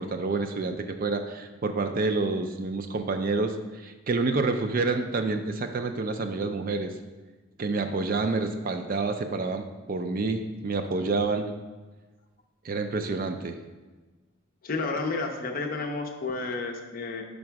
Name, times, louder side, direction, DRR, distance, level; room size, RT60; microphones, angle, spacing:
voice 1, 0.0-3.5 3.8-6.9 7.6-11.5 12.6-13.6, right 3 dB, 40° right, 6 dB, 0.4 m, -28 dB
voice 2, 14.6-17.2, left 3 dB, 40° left, 3 dB, 0.6 m, -31 dB
5.2 x 4.8 x 4.6 m, 1.3 s
head